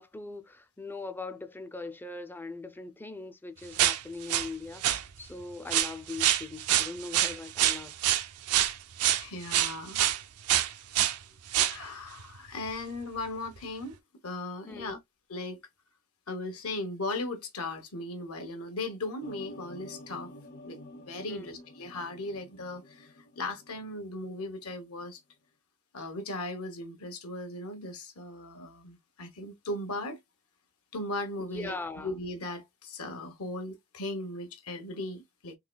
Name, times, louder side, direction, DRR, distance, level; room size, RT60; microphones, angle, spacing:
voice 1, 0.0-7.9 14.7-15.0 21.3-21.5 31.4-32.1, left 3 dB, 10° left, 0.4 m, -40 dB
sound 1, 3.8-4.5 4.8-5.0 5.7-10.2 10.5-11.2 11.5-11.8 12.2-12.4 12.7-12.8 13.6-13.7, right 12 dB, 85° right, 0.5 m, -26 dB
voice 2, 9.1-10.0 11.7-14.0 14.2-15.0 15.3-15.6 16.3-20.3 20.6-20.8 21.1-25.2 25.9-30.2 30.9-31.8 32.0-35.6, left 2 dB, 80° left, 1.1 m, -37 dB
sound 2, 19.2-24.4 24.7-25.2, left 1 dB, 45° left, 0.7 m, -49 dB
3.9 x 3.0 x 2.2 m
head